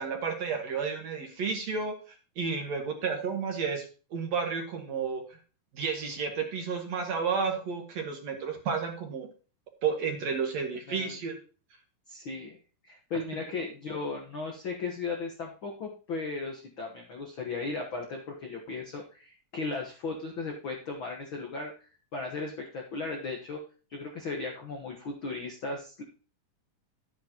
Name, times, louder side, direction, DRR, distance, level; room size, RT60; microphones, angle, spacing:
voice 1, 0.0-5.4 5.7-9.3 9.8-11.4, right 5 dB, 55° right, 3 dB, 2.3 m, -32 dB
voice 2, 12.1-12.6 12.8-21.7 22.1-23.6 23.9-26.0, left 3 dB, 80° left, 1 dB, 1.1 m, -36 dB
11.5 x 9.4 x 2.9 m, 0.36 s
omnidirectional pair, 4.2 m